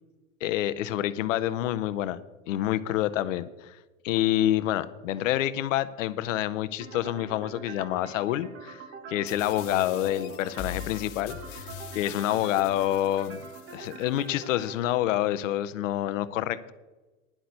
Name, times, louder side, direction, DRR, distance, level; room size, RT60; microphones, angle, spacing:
voice 1, 0.4-2.2 2.5-3.8 4.0-8.8 9.1-11.7 11.9-13.4 13.7-16.7, left 13 dB, 70° left, 14 dB, 0.7 m, -27 dB
sound 1, 6.8-14.8, right 4 dB, 35° right, 1.6 m, -44 dB
sound 2, 9.3-14.3, left 8 dB, 50° left, 1.3 m, -42 dB
10.0 x 5.9 x 8.0 m, 1.2 s
hypercardioid pair, 110°, 40 cm